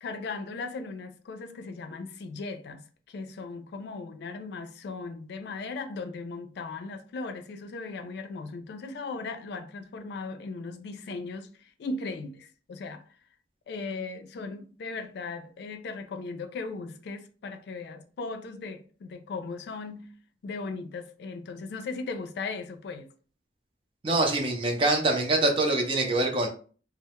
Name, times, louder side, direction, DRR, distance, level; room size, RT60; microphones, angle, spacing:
voice 1, 0.0-13.1 13.7-20.1 20.4-23.1, left 3 dB, 60° left, 0.3 m, -37 dB
voice 2, 24.0-26.5, right 2 dB, 30° right, 0.5 m, -24 dB
2.2 x 2.0 x 2.8 m
head